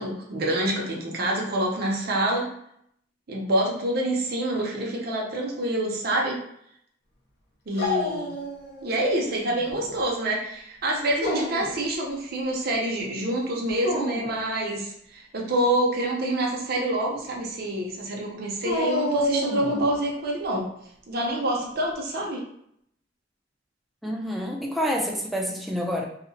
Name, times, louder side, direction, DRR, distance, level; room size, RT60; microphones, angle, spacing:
voice 1, 0.0-2.5 3.3-6.4 7.7-8.4 8.8-20.7 21.1-22.4, right 1 dB, 55° right, -2 dB, 0.6 m, -27 dB
Dog, 7.8-8.9 9.3-10.0 11.0-11.8 13.7-14.4 18.6-20.0, left 1 dB, 60° left, 0.6 m, -29 dB
voice 2, 24.0-26.0, equal, ahead, -1 dB, 0.3 m, -28 dB
2.7 x 2.0 x 2.6 m, 0.71 s
head